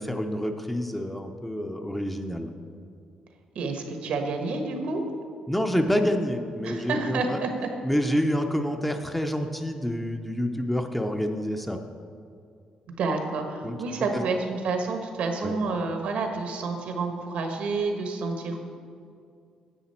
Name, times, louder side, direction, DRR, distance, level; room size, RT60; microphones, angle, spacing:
voice 1, 0.0-2.5 5.5-7.4 7.8-11.8 13.6-13.8 14.1-14.2 15.4-15.5, equal, 5° left, 5 dB, 0.5 m, -28 dB
voice 2, 3.5-5.0 6.6-7.7 13.0-18.6, right 3 dB, 75° right, 4 dB, 1.3 m, -29 dB
9.9 x 7.9 x 4.3 m, 2.3 s
cardioid pair, 125°, 2 cm